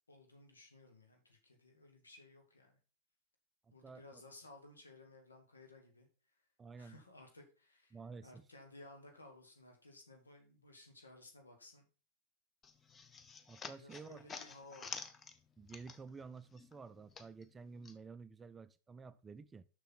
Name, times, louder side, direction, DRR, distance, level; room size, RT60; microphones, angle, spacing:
voice 1, 0.1-2.8 3.7-6.1 6.8-11.9 13.8-15.0, left 2 dB, 80° left, 2.0 m, -58 dB
voice 2, 3.8-4.2 6.6-7.0 7.9-8.5 13.5-14.2 15.6-19.7, right 4 dB, 15° right, 0.4 m, -51 dB
sound 1, 12.6-16.3 16.5-18.0, left 5 dB, 20° left, 0.7 m, -49 dB
6.9 x 6.1 x 4.4 m
figure-of-eight pair, 90°, 0 cm